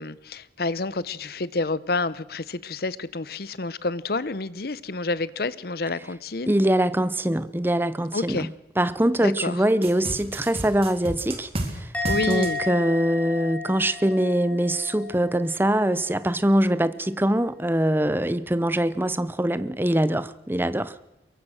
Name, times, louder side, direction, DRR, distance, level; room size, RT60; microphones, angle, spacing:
voice 1, 0.0-6.5 8.1-8.5 9.2-9.6 12.1-12.6, left 3 dB, 60° left, 0.8 m, -29 dB
voice 2, 6.5-8.5 8.8-11.5 11.8-20.9, right 1 dB, 10° right, 0.8 m, -23 dB
sound 1, 9.8-11.7 12.0-12.5, right 1 dB, 30° right, 3.5 m, -30 dB
Musical instrument, 11.9-15.3 15.6-16.0, left 2 dB, 10° left, 5.4 m, -33 dB
23.0 x 22.5 x 6.4 m
head